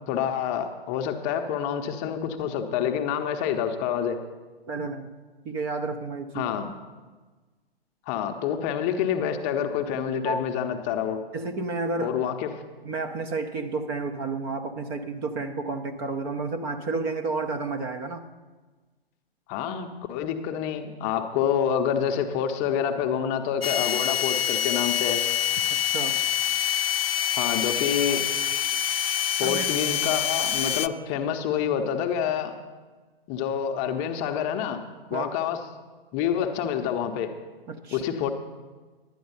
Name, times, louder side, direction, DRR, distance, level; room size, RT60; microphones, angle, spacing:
voice 1, 0.1-4.2 6.3-6.7 8.1-11.2 12.0-12.5 19.5-25.2 27.3-28.2 29.4-32.5 33.3-34.8 35.1-35.6 36.1-37.3 37.9-38.3, left 8 dB, 25° left, 6 dB, 0.7 m, -27 dB
voice 2, 4.7-5.1 5.4-6.5 10.2-10.4 11.3-12.3 12.8-18.2 25.7-26.2 29.4-29.7 35.1-35.3 37.7-38.0, right 3 dB, 25° right, 6 dB, 0.6 m, -31 dB
sound 1, 23.6-30.9, left 10 dB, 70° left, 0.5 m, -26 dB
11.5 x 9.3 x 5.5 m, 1.3 s
figure-of-eight pair, 115°, 31 cm